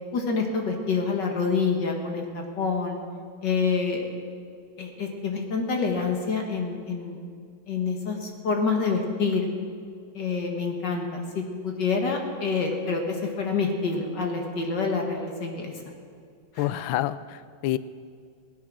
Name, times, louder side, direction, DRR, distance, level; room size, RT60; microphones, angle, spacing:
voice 1, 0.1-3.0 3.4-4.0 4.8-7.2 7.7-9.5 10.1-15.7 16.5-16.8, left 4 dB, 55° left, 2 dB, 2.1 m, -27 dB
voice 2, 16.6-17.8, left 14 dB, 75° left, 16 dB, 1.3 m, -28 dB
17.0 x 11.5 x 6.3 m, 2.2 s
omnidirectional pair, 2.3 m